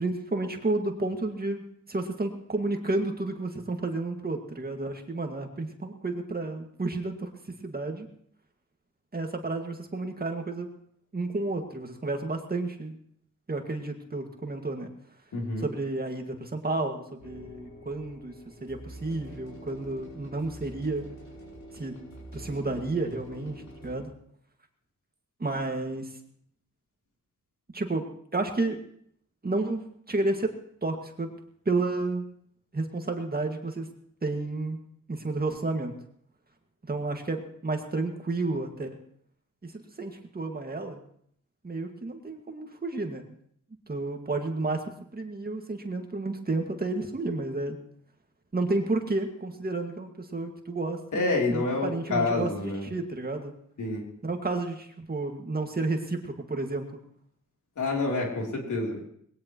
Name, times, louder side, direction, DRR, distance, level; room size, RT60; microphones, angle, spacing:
voice 1, 0.0-7.3 7.6-8.1 9.1-10.7 11.1-13.0 13.5-14.9 15.6-18.3 18.6-21.0 21.8-22.0 22.3-24.1 25.4-26.1 27.7-28.1 28.3-28.8 29.4-30.5 30.8-31.3 31.7-32.2 32.7-33.9 34.2-34.8 35.1-36.0 36.9-39.0 39.6-39.7 40.0-41.0 41.6-43.3 43.9-44.8 45.1-47.8 48.5-53.5 54.2-56.9, right 2 dB, 30° right, 3 dB, 2.1 m, -31 dB
voice 2, 15.3-15.6 51.1-52.9 53.8-54.0 57.8-59.0, left 3 dB, 90° left, -1 dB, 3.5 m, -28 dB
sound 1, 17.2-24.0, right 1 dB, 70° left, 6.5 m, -46 dB
20.5 x 17.5 x 3.1 m, 0.65 s
wide cardioid pair, 95°, 29 cm